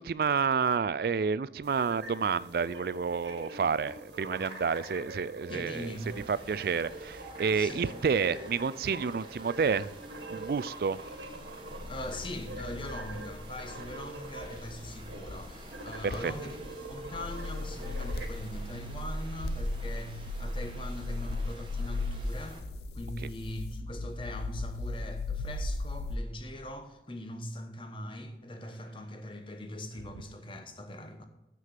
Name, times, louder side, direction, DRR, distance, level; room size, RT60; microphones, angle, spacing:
voice 1, 0.0-6.0 6.3-9.9 10.3-11.0 16.0-16.3, right 5 dB, 55° right, 0.3 m, -29 dB
sound 1, 1.6-18.2, right 2 dB, 80° right, 1.6 m, -45 dB
voice 2, 5.5-6.1 7.5-7.9 11.8-16.6 16.8-22.7 22.9-31.2, left 1 dB, 30° left, 1.0 m, -41 dB
sound 2, 5.7-22.6, right 1 dB, 30° right, 1.2 m, -50 dB
sound 3, 11.4-26.2, left 2 dB, 70° left, 0.5 m, -37 dB
7.7 x 6.3 x 6.6 m
head